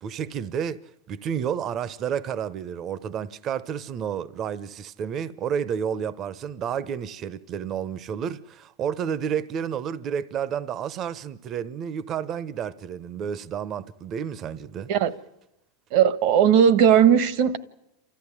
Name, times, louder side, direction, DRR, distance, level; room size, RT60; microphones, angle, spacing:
voice 1, 0.0-14.9, right 8 dB, 40° right, 0.9 m, -30 dB
voice 2, 15.9-17.6, right 8 dB, 60° right, 1.4 m, -17 dB
29.0 x 14.0 x 9.9 m
hypercardioid pair, 105°, 0 cm